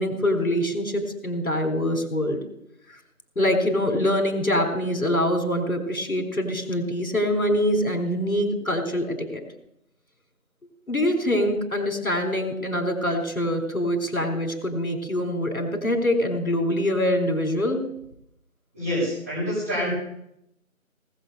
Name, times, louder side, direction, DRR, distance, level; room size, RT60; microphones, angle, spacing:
voice 1, 0.0-2.4 2.9-3.0 3.4-9.4 10.9-17.8, left 1 dB, 75° left, 5 dB, 3.8 m, -24 dB
voice 2, 18.7-19.9, equal, 10° right, -10 dB, 5.9 m, -26 dB
19.0 x 7.1 x 6.7 m, 0.78 s
figure-of-eight pair, 170°, 42 cm